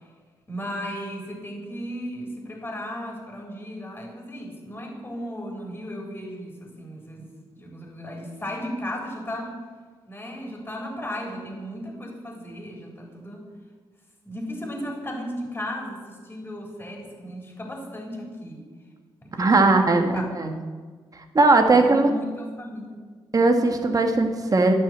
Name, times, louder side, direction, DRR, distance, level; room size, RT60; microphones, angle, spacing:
voice 1, 0.5-7.3 7.6-9.5 10.1-13.4 14.2-18.6 19.2-20.6 21.7-23.0, equal, 20° left, -1 dB, 3.7 m, -35 dB
voice 2, 19.4-20.6 21.3-22.1 23.3-24.7, right 3 dB, 40° right, 5 dB, 1.6 m, -19 dB
10.5 x 6.2 x 7.5 m, 1.5 s
supercardioid pair, 50°, 10 cm